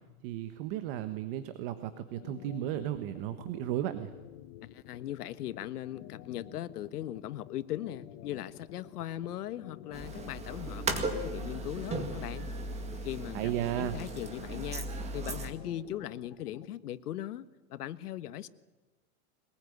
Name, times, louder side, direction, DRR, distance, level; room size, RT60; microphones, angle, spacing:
voice 1, 0.2-4.1 13.3-14.0, right 12 dB, 40° right, 10 dB, 1.3 m, -34 dB
sound 1, 1.9-16.7, left 14 dB, 35° left, 1.1 m, -50 dB
voice 2, 4.6-12.5 13.0-14.9 15.1-18.5, left 12 dB, 80° left, 13 dB, 1.5 m, -39 dB
sound 2, 9.9-15.5, right 2 dB, 15° right, 2.1 m, -37 dB
22.5 x 21.0 x 9.5 m, 1.2 s
supercardioid pair, 160°, 45 cm